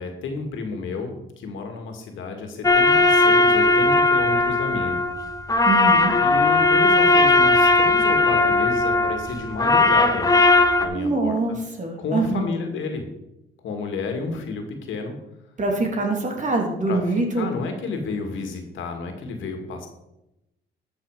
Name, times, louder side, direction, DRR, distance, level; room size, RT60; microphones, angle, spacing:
voice 1, 0.0-5.0 6.2-10.3 10.8-11.6 12.0-13.0 13.6-15.2 16.9-17.0 17.4-19.9, left 4 dB, 80° left, 4 dB, 2.2 m, -31 dB
sound 1, 2.6-10.9, left 2 dB, 20° left, 1.0 m, -18 dB
voice 2, 5.7-6.1 10.9-12.5 15.6-17.5, right 2 dB, 40° right, 2 dB, 2.9 m, -24 dB
12.5 x 6.5 x 4.9 m, 0.90 s
cardioid pair, 90°, 20 cm